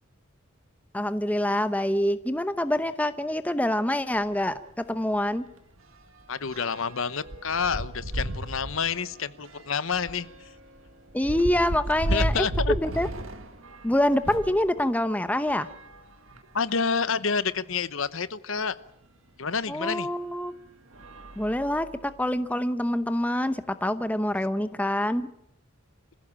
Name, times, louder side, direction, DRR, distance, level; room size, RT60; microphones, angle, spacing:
voice 1, 0.9-5.4 11.1-13.1 13.8-15.7 19.7-20.5 21.4-25.3, left 1 dB, 5° left, 11 dB, 0.8 m, -26 dB
sound 1, 4.2-4.3 4.7-4.9 5.1-14.6 15.3-16.7 17.4-17.5 17.7-17.8 19.5-19.6 20.2-20.5 20.9-22.2, right 1 dB, 75° right, 1.9 m, -35 dB
voice 2, 6.3-10.5 12.1-12.7 16.5-18.8 19.4-20.1, left 5 dB, 70° left, 15 dB, 0.9 m, -28 dB
25.5 x 16.0 x 8.7 m, 0.80 s
head